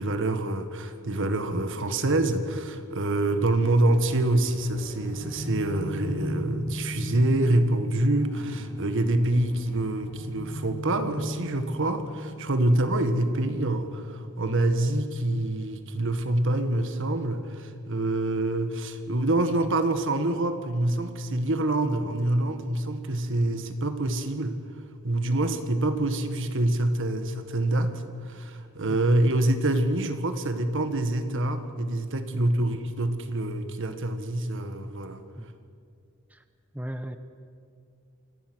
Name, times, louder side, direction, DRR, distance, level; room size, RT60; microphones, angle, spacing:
voice 1, 0.0-24.6 25.0-35.2, right 1 dB, 60° right, 9 dB, 1.6 m, -26 dB
sound 1, 3.9-16.6, left 1 dB, 80° left, 3.3 m, -39 dB
voice 2, 32.3-32.6 35.4-35.5 36.3-36.4 36.7-37.2, equal, 5° right, 9 dB, 0.9 m, -36 dB
27.0 x 18.0 x 6.3 m, 2.4 s
head